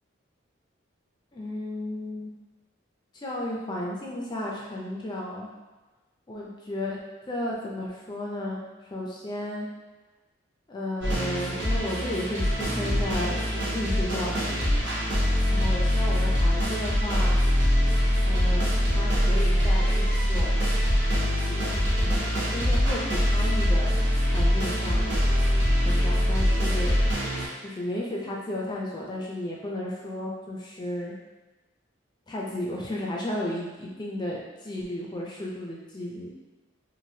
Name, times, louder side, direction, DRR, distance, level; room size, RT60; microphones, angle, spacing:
voice 1, 1.3-2.3 3.1-5.5 6.3-7.0 7.3-8.6 8.9-9.7 10.7-13.4 13.7-15.0 15.5-17.3 18.2-20.9 21.5-22.2 22.5-24.0 24.3-25.1 25.8-27.0 27.6-31.1 32.3-36.3, left 1 dB, 20° left, -3 dB, 0.4 m, -34 dB
sound 1, 11.0-27.5, equal, 70° right, 0.9 m, -23 dB
3.2 x 2.5 x 2.7 m, 1.2 s
head